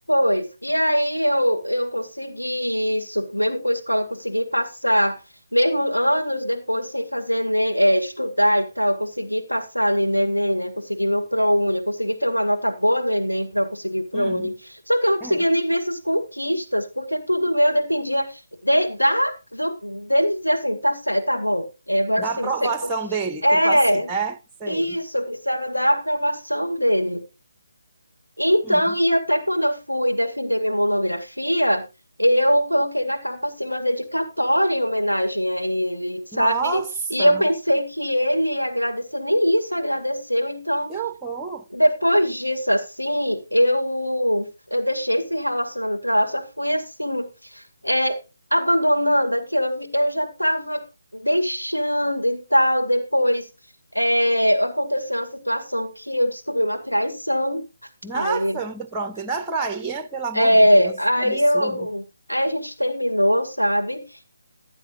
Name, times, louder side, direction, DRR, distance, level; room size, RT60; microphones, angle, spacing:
voice 1, 0.1-5.2 5.5-14.5 14.9-22.7 23.4-24.1 24.7-27.2 28.4-31.8 32.2-36.8 37.1-40.9 41.7-48.2 48.5-50.8 51.1-53.5 53.9-57.6 58.1-58.6 60.3-64.2, equal, 85° left, 2.1 m, -22 dB
voice 2, 14.1-14.5 15.2-15.4 22.2-25.0 28.6-28.9 36.3-36.9 37.2-37.4 40.9-41.7 58.0-61.9, right 4 dB, 5° right, 0.6 m, -29 dB
15.5 x 10.5 x 2.5 m
figure-of-eight pair, 150°, 0 cm